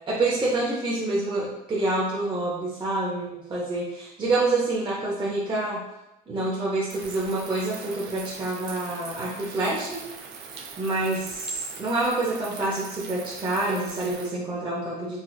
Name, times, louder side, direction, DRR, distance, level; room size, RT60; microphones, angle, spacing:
voice 1, 0.1-5.8 6.3-10.0 10.8-15.2, right 2 dB, 30° right, -5 dB, 0.6 m, -27 dB
sound 1, 6.9-14.3, right 5 dB, 75° right, 0.5 m, -41 dB
4.1 x 2.2 x 2.3 m, 0.93 s
cardioid pair, 110°, 17 cm